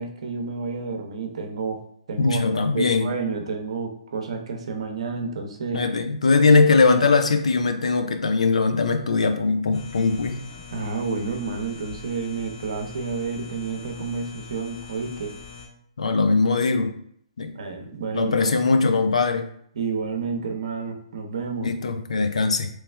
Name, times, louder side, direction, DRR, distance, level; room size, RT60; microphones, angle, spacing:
voice 1, 0.0-1.8 2.1-2.4 2.7-5.8 10.7-15.3 17.5-18.6 19.7-21.7, right 4 dB, 65° right, 4 dB, 0.8 m, -30 dB
voice 2, 2.2-3.1 5.7-10.4 16.0-17.0 17.4-17.6 18.1-19.5 21.6-22.7, left 4 dB, 80° left, 7 dB, 0.5 m, -20 dB
sound 1, 9.7-15.7, left 5 dB, 60° left, 1.4 m, -42 dB
3.1 x 3.1 x 3.3 m, 0.65 s
hypercardioid pair, 135°, 3 cm